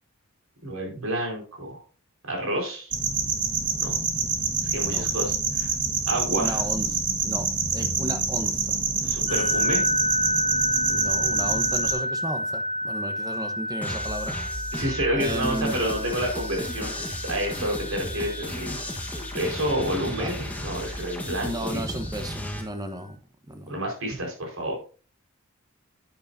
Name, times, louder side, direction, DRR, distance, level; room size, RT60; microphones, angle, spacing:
voice 1, 0.6-1.8 2.2-2.9 3.8-3.9 4.6-5.7 6.1-6.6 9.0-9.8 14.7-18.8 19.3-21.8 23.7-24.8, right 1 dB, 75° right, 0 dB, 4.9 m, -29 dB
sound 1, 2.9-11.9, right 5 dB, 40° right, 1.7 m, -26 dB
voice 2, 6.3-7.5 7.7-8.8 10.8-14.7 15.1-15.8 20.1-20.4 21.4-23.2 23.5-23.7, right 1 dB, 15° right, 7 dB, 1.1 m, -34 dB
sound 2, 9.3-21.5, left 1 dB, 30° left, 0.4 m, -30 dB
sound 3, 13.8-22.6, left 1 dB, 5° left, 1.4 m, -34 dB
9.7 x 9.7 x 2.7 m, 0.37 s
head